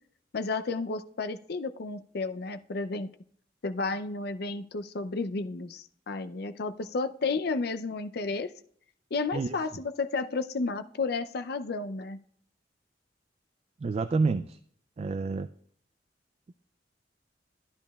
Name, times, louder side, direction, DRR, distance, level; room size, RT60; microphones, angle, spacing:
voice 1, 0.3-3.1 3.6-8.5 9.1-12.2, left 3 dB, 60° left, 10 dB, 0.5 m, -32 dB
voice 2, 13.8-14.6 15.0-15.5, right 4 dB, 35° right, 11 dB, 0.3 m, -28 dB
14.0 x 10.5 x 2.3 m, 0.62 s
head